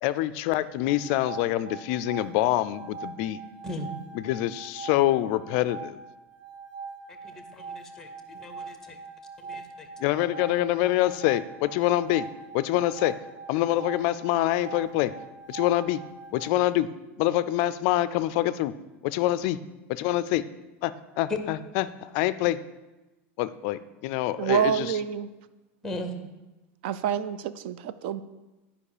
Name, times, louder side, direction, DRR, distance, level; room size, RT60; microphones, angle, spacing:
voice 1, 0.0-3.4 4.1-6.0 10.0-12.3 12.5-13.1 13.5-15.1 15.5-16.0 16.3-16.9 17.2-18.7 19.0-19.6 19.9-20.4 20.8-22.6 23.4-25.0, left 14 dB, 45° left, 15 dB, 0.4 m, -25 dB
sound 1, 0.7-16.5, right 4 dB, 40° right, 1.0 m, -42 dB
voice 2, 7.2-8.8 9.5-9.9 25.8-26.1, equal, 5° left, 7 dB, 0.8 m, -38 dB
voice 3, 24.4-25.3 26.8-28.2, right 9 dB, 55° right, 14 dB, 0.4 m, -27 dB
11.0 x 5.3 x 4.9 m, 1.1 s
supercardioid pair, 170°, 7 cm